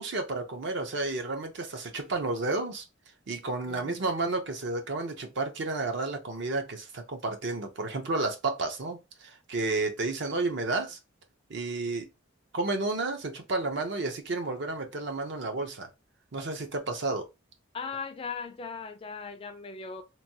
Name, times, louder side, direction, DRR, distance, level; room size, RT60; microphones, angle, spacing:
voice 1, 0.0-2.8 3.3-11.0 11.5-12.1 12.5-15.9 16.3-17.3, right 3 dB, 60° right, 0.6 m, -31 dB
voice 2, 3.7-4.0 17.7-20.0, left 5 dB, 25° left, 0.3 m, -38 dB
3.0 x 2.2 x 2.7 m
head